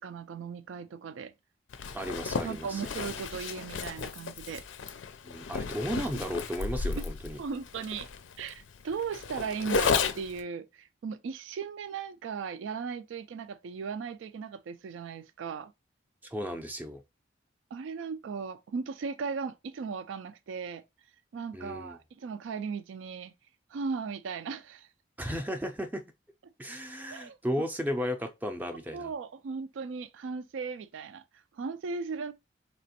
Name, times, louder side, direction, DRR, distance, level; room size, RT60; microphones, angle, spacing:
voice 1, 0.0-1.3 2.4-4.6 7.4-8.1 8.4-15.7 17.7-20.8 21.3-23.3 23.7-24.9 27.1-27.4 28.9-32.3, right 5 dB, 90° right, 0.3 m, -37 dB
Zipper (clothing), 1.7-10.4, left 5 dB, 85° left, 0.5 m, -33 dB
voice 2, 1.9-2.8 5.2-7.4 16.2-17.0 21.5-22.0 25.2-26.0 26.6-29.1, equal, 10° right, 0.4 m, -34 dB
4.1 x 2.9 x 2.8 m
head